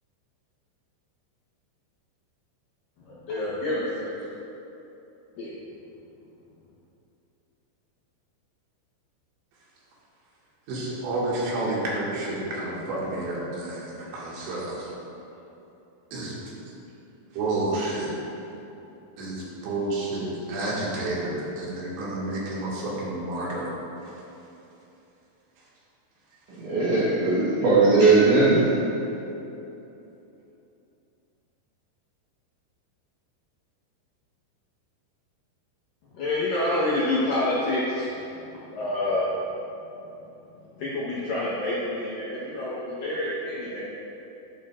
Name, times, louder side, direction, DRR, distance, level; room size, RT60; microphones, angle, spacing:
voice 1, 3.1-4.3 5.4-5.5 36.1-38.1 38.7-39.3 40.8-43.8, left 1 dB, 75° left, -7 dB, 2.0 m, -27 dB
voice 2, 10.7-14.9 16.1-16.3 17.3-18.1 19.2-23.7 24.1-24.2, right 2 dB, 70° right, -6 dB, 3.9 m, -30 dB
voice 3, 26.6-28.7, right 3 dB, 90° right, -8 dB, 1.7 m, -19 dB
12.0 x 10.5 x 2.5 m, 2.9 s
omnidirectional pair, 5.6 m